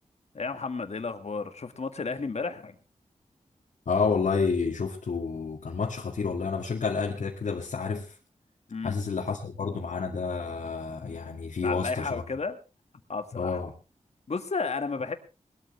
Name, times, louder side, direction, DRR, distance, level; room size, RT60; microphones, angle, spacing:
voice 1, 0.3-2.8 8.7-9.0 11.6-12.6 13.1-13.6 14.3-15.1, left 4 dB, 60° left, 1.8 m, -32 dB
voice 2, 3.9-8.2 8.8-12.2 13.3-13.7, left 5 dB, 85° left, 2.2 m, -29 dB
20.5 x 13.0 x 3.3 m
wide cardioid pair, 95°, 13 cm